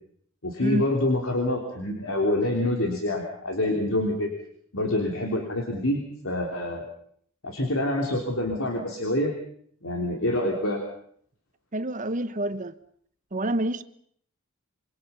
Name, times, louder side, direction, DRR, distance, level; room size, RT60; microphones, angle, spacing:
voice 1, 0.4-4.3 4.7-6.9 7.4-9.3 9.8-10.8, left 1 dB, 80° left, 3.3 m, -26 dB
voice 2, 11.7-12.7 13.3-13.8, right 1 dB, 40° right, 1.2 m, -27 dB
27.0 x 23.5 x 5.6 m
head